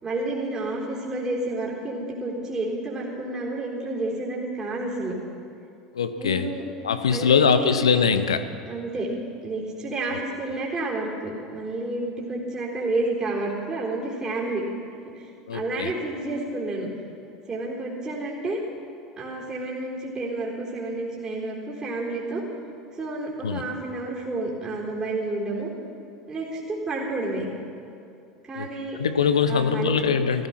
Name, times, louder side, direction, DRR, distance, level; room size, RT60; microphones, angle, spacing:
voice 1, 0.0-5.2 6.2-6.7 7.1-7.7 8.7-9.1 9.4-14.6 15.1-16.9 17.5-18.6 19.2-22.4 23.0-25.7 26.3-27.5 28.4-29.0 29.5-30.0, right 2 dB, 25° right, -4 dB, 4.0 m, -30 dB
voice 2, 5.9-6.5 6.8-8.5 10.1-10.2 15.5-15.9 23.4-23.6 28.6-30.5, left 6 dB, 80° left, 11 dB, 0.8 m, -22 dB
16.0 x 15.0 x 6.0 m, 2.6 s
hypercardioid pair, 75°, 3 cm